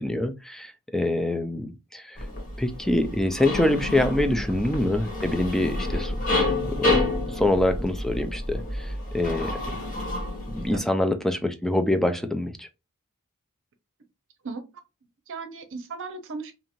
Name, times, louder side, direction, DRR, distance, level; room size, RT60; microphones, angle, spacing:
voice 1, 0.0-2.2 2.6-7.1 7.4-9.6 10.5-12.7, left 1 dB, ahead, 0.3 m, -25 dB
sound 1, 2.2-10.8, left 2 dB, 40° left, 1.1 m, -29 dB
voice 2, 15.3-16.5, right 4 dB, 60° right, 0.7 m, -35 dB
2.7 x 2.5 x 2.9 m
head